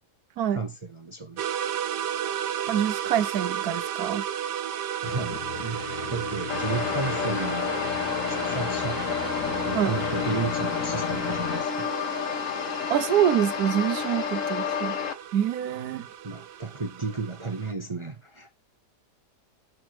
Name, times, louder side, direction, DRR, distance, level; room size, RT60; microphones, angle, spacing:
voice 1, 0.5-1.4 5.0-5.8 6.1-7.8 8.3-9.1 9.5-11.9 16.2-18.5, right 4 dB, 35° right, 0.4 m, -33 dB
sound 1, 1.4-17.7, right 10 dB, 90° right, 1.3 m, -34 dB
voice 2, 2.7-4.2 9.7-9.9 12.9-15.0 15.3-16.0, right 10 dB, 70° right, 1.2 m, -25 dB
sound 2, 5.0-11.6, left 6 dB, 80° left, 2.4 m, -35 dB
sound 3, 6.5-15.1, left 7 dB, 55° left, 1.1 m, -30 dB
6.2 x 6.0 x 4.7 m
omnidirectional pair, 1.8 m